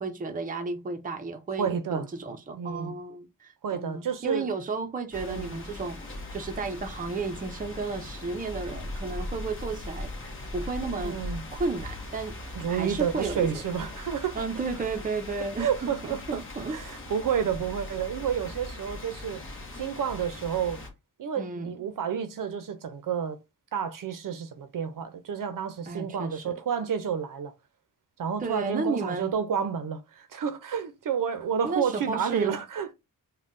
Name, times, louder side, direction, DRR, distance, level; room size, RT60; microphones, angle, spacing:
voice 1, 0.0-6.0 6.3-11.2 11.5-12.4 12.7-13.5 14.3-16.8 21.4-21.7 25.9-26.5 28.4-29.3 31.6-32.6, right 4 dB, 25° right, 0.5 m, -33 dB
voice 2, 1.6-2.1 2.5-2.9 3.6-4.5 5.2-5.6 11.0-11.4 12.6-14.4 15.6-16.4 16.7-19.4 19.8-20.8 21.2-23.4 23.7-27.5 28.2-32.9, right 7 dB, 70° right, 0.6 m, -30 dB
sound 1, 5.1-20.9, left 1 dB, 35° left, 1.0 m, -39 dB
5.3 x 2.2 x 2.5 m
wide cardioid pair, 160°, 34 cm